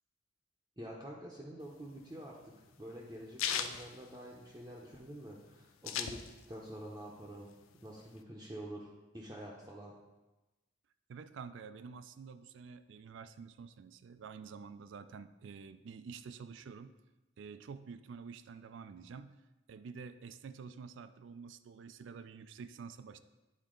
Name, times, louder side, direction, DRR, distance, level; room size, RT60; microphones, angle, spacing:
voice 1, 0.8-6.2 6.5-7.5 7.8-9.9, right 1 dB, 20° right, -4 dB, 0.6 m, -47 dB
sound 1, 1.7-4.8 5.1-5.2 5.4-6.7 7.1-8.2, left 8 dB, 85° left, 0.4 m, -38 dB
voice 2, 11.1-16.9 17.4-19.4 19.7-23.2, right 5 dB, 65° right, 12 dB, 0.3 m, -49 dB
9.3 x 4.0 x 3.8 m, 1.1 s
head